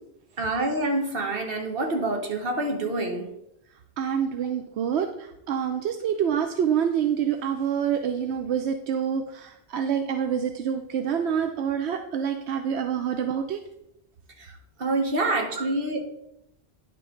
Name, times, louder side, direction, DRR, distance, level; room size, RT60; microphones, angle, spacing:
voice 1, 0.4-3.3 14.8-16.0, right 2 dB, 60° right, 3 dB, 1.4 m, -26 dB
voice 2, 4.0-5.1 5.5-13.6 15.6-15.7, right 8 dB, 85° right, 6 dB, 0.9 m, -26 dB
10.0 x 5.8 x 3.8 m, 0.81 s
omnidirectional pair, 1.1 m